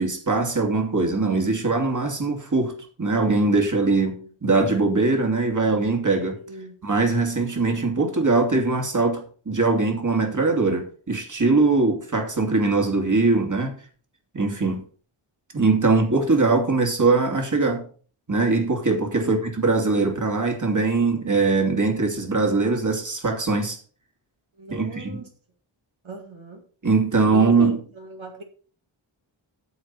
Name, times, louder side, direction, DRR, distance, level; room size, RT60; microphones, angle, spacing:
voice 1, 0.0-4.2 4.4-6.4 6.8-13.7 14.3-14.8 15.5-17.8 18.3-23.8 24.7-25.2 26.8-27.8, right 3 dB, 35° right, 2.6 m, -21 dB
voice 2, 6.4-6.7 19.2-19.4 24.6-25.3 26.0-26.6 27.3-28.4, equal, 65° right, 2.1 m, -37 dB
13.5 x 4.8 x 5.9 m
wide cardioid pair, 95°, 50 cm